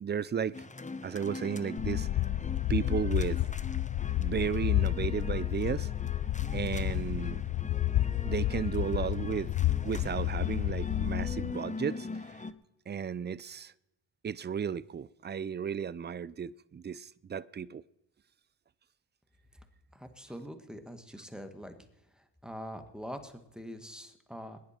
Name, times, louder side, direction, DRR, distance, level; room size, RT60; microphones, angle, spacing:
voice 1, 0.0-0.7 1.0-2.1 2.7-3.4 4.2-5.9 6.5-7.4 8.2-9.5 9.8-12.4 12.9-13.7 14.2-17.8, right 7 dB, 25° right, 0.4 m, -34 dB
sound 1, 0.5-12.5, left 3 dB, 15° left, 0.8 m, -41 dB
sound 2, 1.8-11.5, left 14 dB, 60° left, 0.5 m, -31 dB
voice 2, 19.9-21.7 22.2-24.6, equal, ahead, 1.6 m, -44 dB
21.0 x 10.0 x 4.4 m
cardioid pair, 70°, 43 cm